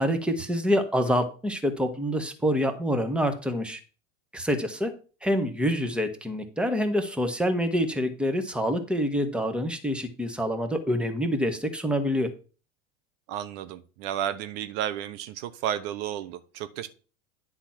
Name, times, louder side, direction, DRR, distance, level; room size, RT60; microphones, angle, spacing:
voice 1, 0.0-3.8 4.3-4.9 5.2-12.3, equal, 5° right, 1.6 m, -26 dB
voice 2, 13.3-16.9, right 10 dB, 55° right, 1.0 m, -32 dB
10.0 x 4.1 x 5.9 m
hypercardioid pair, 90°, 39 cm